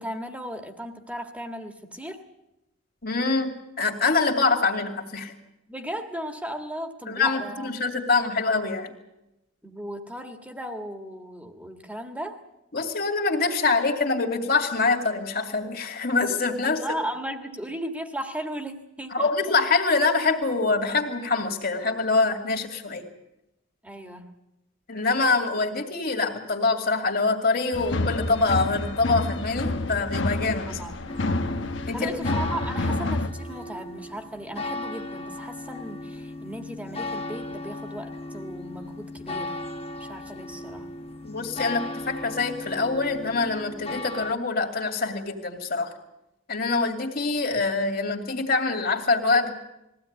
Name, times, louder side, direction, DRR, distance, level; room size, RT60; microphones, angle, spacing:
voice 1, 0.0-2.2 5.7-7.7 9.6-12.4 16.6-19.3 23.8-24.4 30.7-31.0 31.9-39.6 40.0-40.9, right 1 dB, 5° right, 6 dB, 1.7 m, -36 dB
voice 2, 3.0-5.3 7.1-8.9 12.7-16.8 19.1-23.0 24.9-30.8 31.9-32.3 41.2-45.9 46.5-49.5, left 3 dB, 50° left, 4 dB, 2.5 m, -25 dB
sound 1, 27.7-33.3, left 2 dB, 65° left, 1.3 m, -28 dB
sound 2, 31.1-44.3, left 2 dB, 30° left, 1.0 m, -36 dB
21.0 x 16.0 x 9.5 m, 0.92 s
head